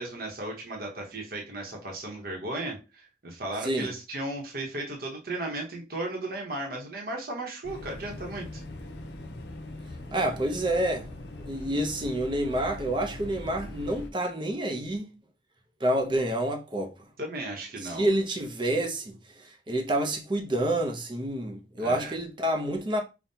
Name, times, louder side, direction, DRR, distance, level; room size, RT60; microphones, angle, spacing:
voice 1, 0.0-8.6 17.2-18.1 21.8-22.1, right 2 dB, 55° right, 1.0 m, -35 dB
sound 1, 7.6-14.1, left 1 dB, 70° left, 0.7 m, -41 dB
voice 2, 10.1-11.1 11.4-15.1 15.8-16.9 17.8-23.0, right 1 dB, 25° right, 0.6 m, -28 dB
5.3 x 2.3 x 2.8 m
head